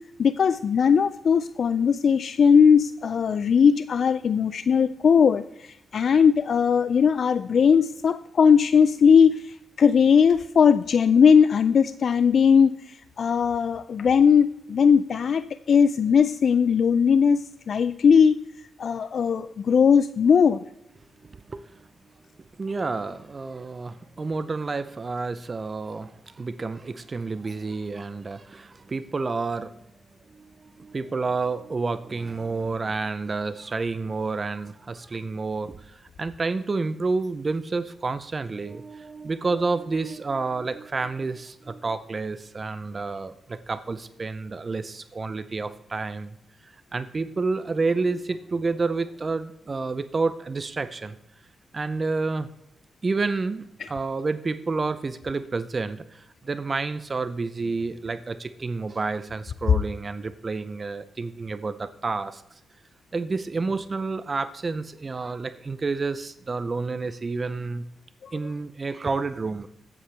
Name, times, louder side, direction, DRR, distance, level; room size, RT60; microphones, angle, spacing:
voice 1, 0.2-18.4 18.8-20.6 68.2-68.3, left 6 dB, 60° left, 14 dB, 0.3 m, -19 dB
voice 2, 21.2-21.9 22.6-29.7 30.3-46.3 46.6-51.2 51.7-52.5 53.0-62.4 63.1-67.8 68.3-69.7, right 3 dB, 35° right, 13 dB, 0.6 m, -29 dB
13.0 x 8.6 x 3.4 m, 0.80 s
cardioid pair, 70°, 0 cm